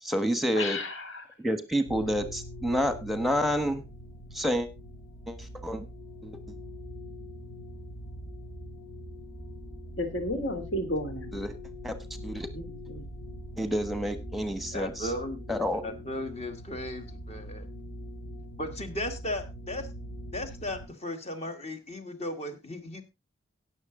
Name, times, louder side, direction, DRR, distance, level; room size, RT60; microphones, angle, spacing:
voice 1, 0.0-0.8 1.4-3.8 4.3-4.7 5.3-5.4 5.6-5.9 6.2-6.4 11.3-11.5 11.8-11.9 12.2-12.5 13.6-14.9 15.5-15.8, equal, ahead, 10 dB, 1.3 m, -28 dB
voice 2, 0.6-1.2 10.0-11.3 12.5-13.0, left 1 dB, 60° left, 7 dB, 2.9 m, -33 dB
sound 1, 1.8-20.9, equal, 75° left, 4.8 m, -43 dB
voice 3, 14.7-17.7 18.6-19.9 20.3-23.0, left 1 dB, 30° left, 7 dB, 1.5 m, -36 dB
17.0 x 6.8 x 3.8 m, 0.25 s
head